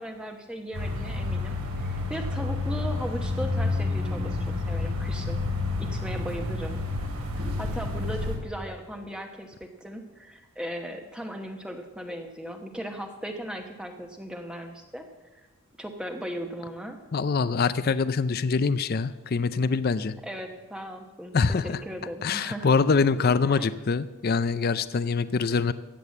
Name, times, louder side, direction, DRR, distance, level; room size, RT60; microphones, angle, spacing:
voice 1, 0.0-1.5 1.8-4.4 4.7-5.4 5.8-6.8 7.3-15.0 15.8-17.0 20.2-22.7 23.4-23.7, equal, 5° right, 4 dB, 1.0 m, -37 dB
sound 1, 0.7-8.4, left 2 dB, 75° right, 3.0 m, -29 dB
voice 2, 17.1-20.1 21.3-21.8 22.2-25.7, left 4 dB, 45° left, 15 dB, 0.4 m, -24 dB
14.5 x 9.0 x 7.1 m, 1.2 s
head